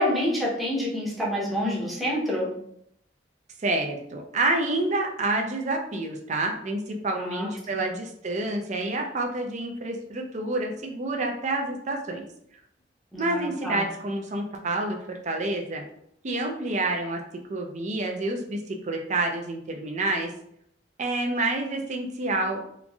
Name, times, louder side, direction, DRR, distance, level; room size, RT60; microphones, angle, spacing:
voice 1, 0.0-2.5 7.2-7.9 13.1-13.8, equal, ahead, -5 dB, 0.7 m, -28 dB
voice 2, 3.6-12.3 13.2-15.8 16.2-17.2 17.5-20.3 21.0-22.6, right 2 dB, 40° right, 2 dB, 0.4 m, -28 dB
3.0 x 2.5 x 2.2 m, 0.72 s
head